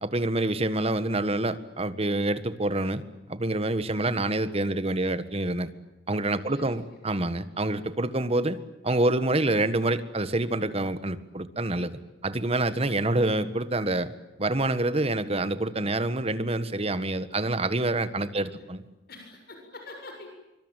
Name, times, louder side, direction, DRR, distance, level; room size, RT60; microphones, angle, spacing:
voice 1, 0.0-3.0 3.3-5.7 6.1-8.6 8.8-11.9 12.2-14.1 14.4-18.8, right 2 dB, 35° right, 12 dB, 1.6 m, -27 dB
voice 2, 6.3-7.0 18.2-18.6 19.1-20.3, left 2 dB, 60° left, 3 dB, 7.3 m, -46 dB
25.0 x 25.0 x 9.1 m, 0.98 s
head